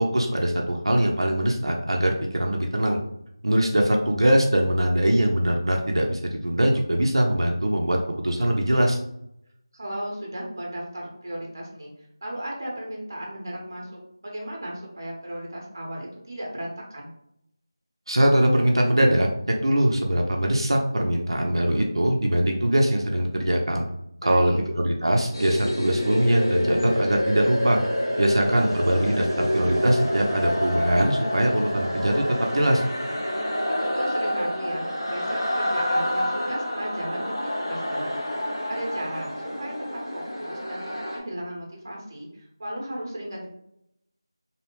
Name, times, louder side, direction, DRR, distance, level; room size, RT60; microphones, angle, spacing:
voice 1, 0.0-3.0 3.4-9.0 18.1-23.9 24.2-27.8 28.2-32.2 32.5-32.8, right 1 dB, 85° right, 1 dB, 0.6 m, -22 dB
voice 2, 9.7-11.9 12.2-17.1 24.2-24.6 33.7-38.1 38.7-43.5, right 1 dB, 40° right, -2 dB, 0.8 m, -35 dB
sound 1, 25.3-41.2, equal, 85° left, 1.0 m, -28 dB
Brass instrument, 27.6-31.8, right 1 dB, 5° left, 0.6 m, -41 dB
2.8 x 2.0 x 3.0 m, 0.75 s
figure-of-eight pair, 175°, 3 cm